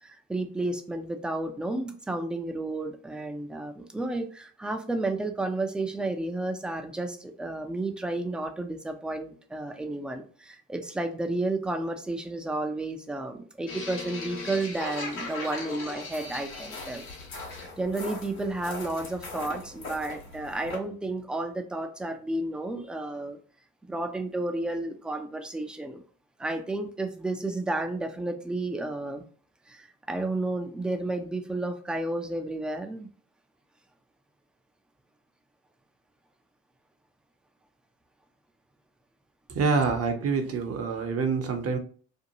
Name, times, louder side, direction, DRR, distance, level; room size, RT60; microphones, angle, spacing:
voice 1, 0.0-17.1 17.5-23.4 23.9-26.0 26.4-29.2 29.7-33.1, right 2 dB, 5° right, 6 dB, 0.3 m, -32 dB
sound 1, 13.7-20.8, left 3 dB, 85° left, 1.1 m, -39 dB
voice 2, 39.5-41.8, right 4 dB, 40° right, 6 dB, 0.6 m, -26 dB
2.6 x 2.2 x 2.8 m, 0.42 s
hypercardioid pair, 60°, 39 cm